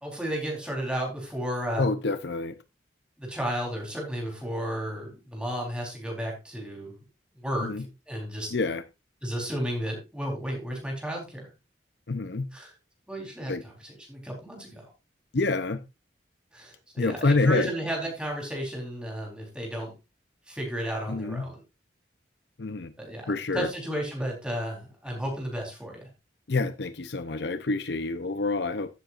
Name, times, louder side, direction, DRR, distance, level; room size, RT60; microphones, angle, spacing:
voice 1, 0.0-1.9 3.2-7.0 7.4-8.5 9.2-11.5 12.5-12.7 13.1-14.9 16.5-19.9 20.5-21.6 23.0-26.1, equal, 5° right, 3.9 m, -33 dB
voice 2, 1.8-2.6 7.6-7.8 8.5-8.8 12.1-12.5 13.5-13.6 15.3-15.8 17.0-17.7 21.1-21.5 22.6-22.9 23.3-23.7 26.5-28.9, left 3 dB, 60° left, 0.7 m, -27 dB
15.5 x 7.8 x 2.5 m
head